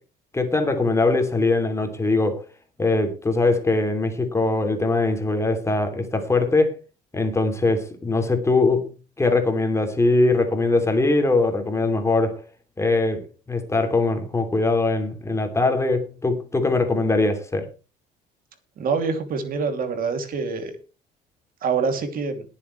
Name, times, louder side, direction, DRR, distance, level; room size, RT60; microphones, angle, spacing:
voice 1, 0.3-2.4 2.8-6.7 7.1-8.9 9.2-12.4 12.8-17.7, left 2 dB, 15° left, 2.9 m, -21 dB
voice 2, 18.8-20.7 21.6-22.4, right 5 dB, 60° right, 2.8 m, -25 dB
20.5 x 7.5 x 3.2 m
cardioid pair, 110°, 17 cm